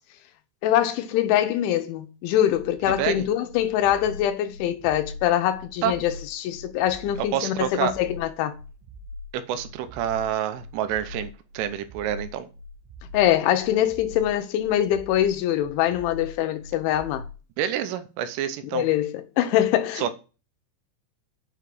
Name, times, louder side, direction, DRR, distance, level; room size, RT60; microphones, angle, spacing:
voice 1, 0.6-8.6 13.1-17.2 18.7-20.1, left 11 dB, 80° left, 3.1 m, -23 dB
sound 1, 2.4-17.4, left 2 dB, 70° right, 3.3 m, -42 dB
voice 2, 2.9-3.3 5.8-5.9 7.3-7.9 9.3-12.5 17.6-18.9 20.0-20.1, right 10 dB, 85° right, 3.4 m, -28 dB
7.8 x 5.5 x 7.6 m
omnidirectional pair, 5.6 m